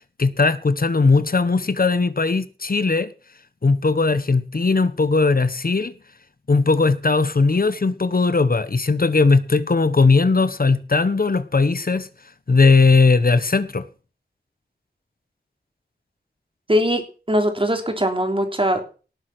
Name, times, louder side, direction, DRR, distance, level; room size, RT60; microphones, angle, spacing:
voice 1, 0.2-3.1 3.6-5.9 6.5-12.1 12.5-13.8, left 4 dB, 55° left, 1.1 m, -18 dB
voice 2, 16.7-19.0, equal, 30° right, 3.4 m, -21 dB
18.5 x 7.8 x 6.1 m
wide cardioid pair, 70°, 18 cm